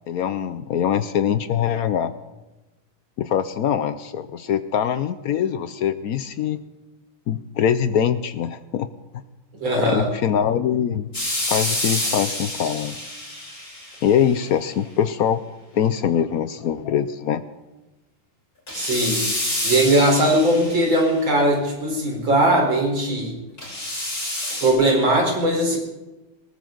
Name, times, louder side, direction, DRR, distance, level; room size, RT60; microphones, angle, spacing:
voice 1, 0.1-2.1 3.2-6.6 7.3-8.9 9.8-11.1 11.5-12.9 14.0-15.4 15.7-17.4, left 9 dB, 75° left, 12 dB, 0.8 m, -23 dB
voice 2, 9.6-10.1 18.7-19.2 19.6-23.3 24.6-25.8, right 1 dB, 65° right, 0 dB, 5.0 m, -19 dB
sound 1, 11.1-14.2 18.7-21.2 23.6-24.7, left 1 dB, 45° left, 8.7 m, -28 dB
20.0 x 18.5 x 3.9 m, 1.0 s
omnidirectional pair, 2.3 m